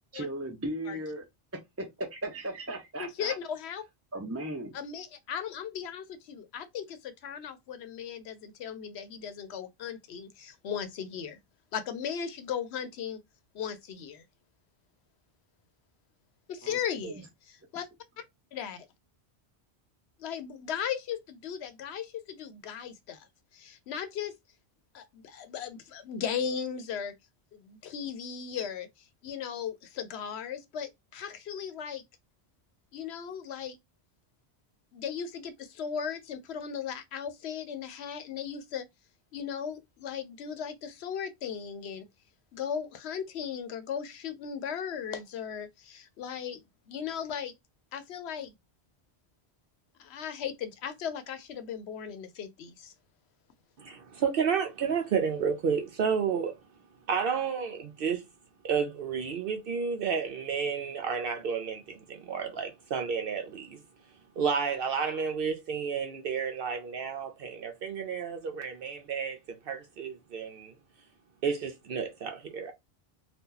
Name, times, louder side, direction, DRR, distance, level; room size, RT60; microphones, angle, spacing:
voice 1, 0.1-1.2 1.5-3.3 4.1-4.8 16.6-17.2, right 1 dB, 20° right, 0.4 m, -37 dB
voice 2, 3.0-3.8 4.7-11.4 11.7-13.2 13.5-14.2 16.5-17.2 17.7-17.9 18.5-18.9 20.2-23.3 23.5-24.3 24.9-27.1 27.5-28.9 29.2-32.0 32.9-33.8 34.9-38.9 39.3-42.1 42.5-47.5 47.9-48.5 50.0-52.9, left 8 dB, 80° left, 0.9 m, -37 dB
voice 3, 53.8-56.5 57.1-58.2 58.6-63.8 64.4-70.7 71.4-72.7, right 6 dB, 65° right, 0.7 m, -31 dB
2.8 x 2.3 x 3.7 m
omnidirectional pair, 1.1 m